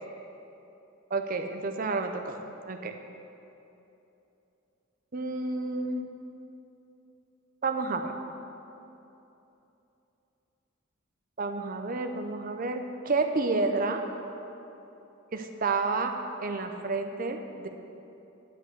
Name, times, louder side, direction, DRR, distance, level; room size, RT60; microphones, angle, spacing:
voice 1, 1.1-2.4 2.7-2.9 5.1-6.1 7.6-8.1 11.4-14.0 15.3-16.1 16.4-17.7, right 3 dB, 40° right, 5 dB, 0.7 m, -30 dB
9.9 x 5.4 x 7.9 m, 2.9 s
head